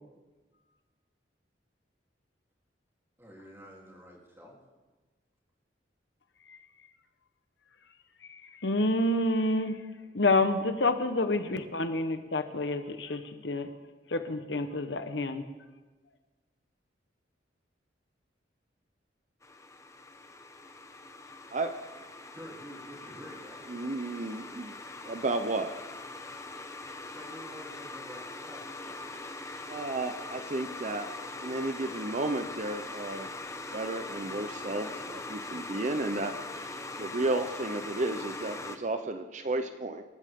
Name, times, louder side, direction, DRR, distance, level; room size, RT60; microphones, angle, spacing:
voice 1, 3.2-4.6 22.3-23.6 27.1-29.2 30.9-31.0, equal, 15° right, -3 dB, 3.4 m, -48 dB
voice 2, 8.2-9.8 10.1-13.7 14.1-15.4, left 2 dB, 70° left, 8 dB, 1.1 m, -28 dB
sound 1, 19.4-38.8, left 2 dB, 15° left, 1.0 m, -42 dB
voice 3, 23.7-24.7 25.0-25.9 29.7-33.3 33.7-40.0, right 2 dB, 40° right, 8 dB, 0.7 m, -33 dB
26.5 x 14.0 x 3.7 m, 1.2 s
head